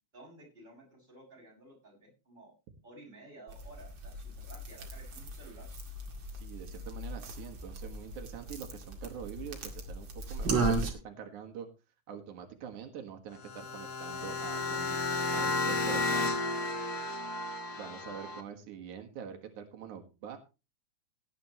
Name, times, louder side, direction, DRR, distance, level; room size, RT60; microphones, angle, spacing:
voice 1, 0.1-2.5 2.8-5.7 17.6-18.4, right 1 dB, 15° right, -2 dB, 7.0 m, -54 dB
sound 1, 3.5-10.9, right 3 dB, 45° right, 2.7 m, -36 dB
voice 2, 6.3-11.7 12.1-15.0 15.3-16.4 17.8-20.4, right 8 dB, 90° right, 5 dB, 3.0 m, -45 dB
sound 2, 13.3-18.4, left 3 dB, 45° left, 1.4 m, -33 dB
17.0 x 10.5 x 3.0 m, 0.29 s
omnidirectional pair, 3.4 m